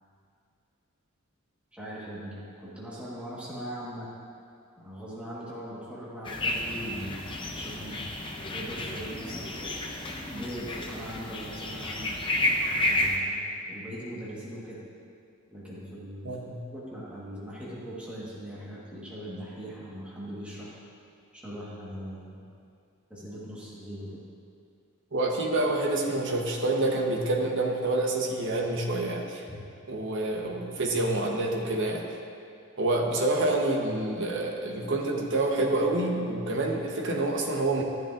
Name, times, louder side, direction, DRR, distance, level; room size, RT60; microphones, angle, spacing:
voice 1, 1.7-4.1 4.8-8.1 8.5-9.7 10.3-12.2 12.8-14.8 15.5-16.3 16.7-20.7 21.3-22.5 23.1-24.2 29.5-29.6, equal, 5° right, -7 dB, 1.4 m, -40 dB
sound 1, 6.2-13.2, left 1 dB, 20° left, 0.6 m, -31 dB
voice 2, 16.2-16.6 25.1-29.4 29.9-32.0 32.8-37.8, right 2 dB, 55° right, 0 dB, 1.1 m, -27 dB
12.0 x 10.0 x 2.6 m, 2.4 s
head